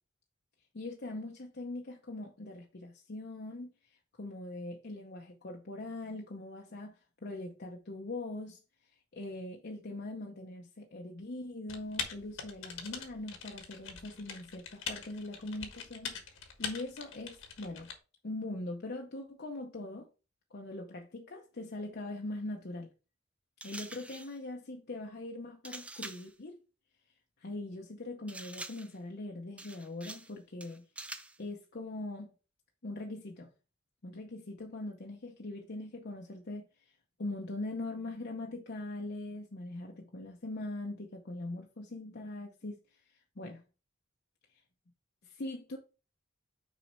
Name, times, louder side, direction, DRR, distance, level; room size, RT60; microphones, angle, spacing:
voice 1, 0.7-3.7 4.2-8.6 9.1-17.9 18.2-20.1 20.5-22.9 23.6-26.5 27.4-30.8 31.4-32.3 32.8-33.5 34.0-36.7 37.2-42.8 43.4-43.6 45.2-45.8, left 2 dB, 50° left, 0.7 m, -41 dB
Typing, 11.7-17.9, left 6 dB, 70° left, 1.4 m, -42 dB
sound 1, 23.6-24.4 25.6-26.3 28.3-29.0 29.6-30.3 30.6-31.4, right 2 dB, 5° right, 0.4 m, -45 dB
6.2 x 4.2 x 4.2 m
head